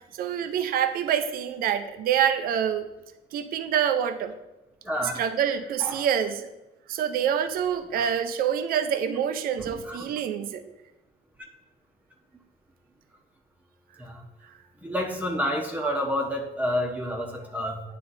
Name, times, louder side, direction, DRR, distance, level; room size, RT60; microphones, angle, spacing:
voice 1, 0.1-2.9 3.3-4.3 5.2-6.5 6.9-10.6, right 8 dB, 60° right, 10 dB, 0.5 m, -26 dB
voice 2, 4.8-5.2 5.8-6.1 7.9-8.1 9.6-10.0 10.5-10.7 14.0-14.2 14.8-17.8, equal, 10° right, 1 dB, 0.9 m, -29 dB
9.5 x 3.3 x 4.0 m, 0.98 s
cardioid pair, 110°, 17 cm